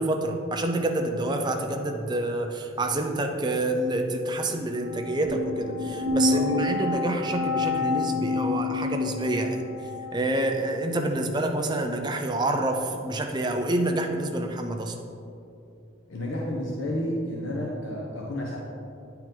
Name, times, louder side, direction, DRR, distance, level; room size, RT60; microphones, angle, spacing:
voice 1, 0.0-9.6 10.1-14.9, right 1 dB, 20° right, 4 dB, 0.5 m, -27 dB
sound 1, 4.7-10.1, left 3 dB, 65° right, 1.3 m, -28 dB
voice 2, 6.2-6.7 16.1-18.6, left 1 dB, 75° left, -3 dB, 0.8 m, -30 dB
9.1 x 4.5 x 3.8 m, 2.6 s
head